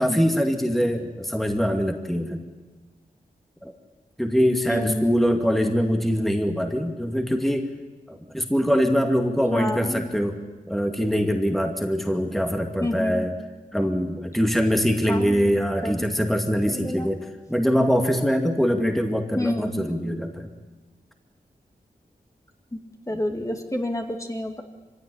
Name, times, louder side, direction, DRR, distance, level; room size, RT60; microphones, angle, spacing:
voice 1, 0.0-2.4 3.6-3.7 4.2-7.7 8.1-10.4 10.7-13.3 13.7-20.5, equal, ahead, 4 dB, 2.2 m, -23 dB
voice 2, 4.7-5.2 9.5-10.1 12.8-13.3 15.1-15.5 15.8-16.0 16.7-17.1 19.4-19.8 23.1-24.6, left 1 dB, 20° left, 3 dB, 2.3 m, -29 dB
24.0 x 16.5 x 9.9 m, 1.3 s
wide cardioid pair, 65°, 16 cm